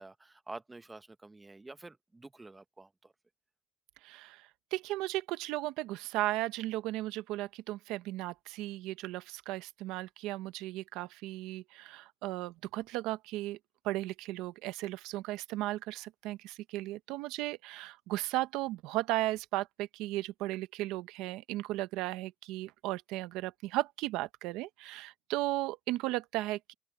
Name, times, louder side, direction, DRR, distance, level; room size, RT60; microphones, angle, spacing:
voice 1, 0.0-3.1, right 2 dB, 20° right, 1.3 m, -49 dB
voice 2, 4.0-13.6 13.8-26.7, right 17 dB, 80° right, 0.9 m, -35 dB
open air
supercardioid pair, 75°, 0 cm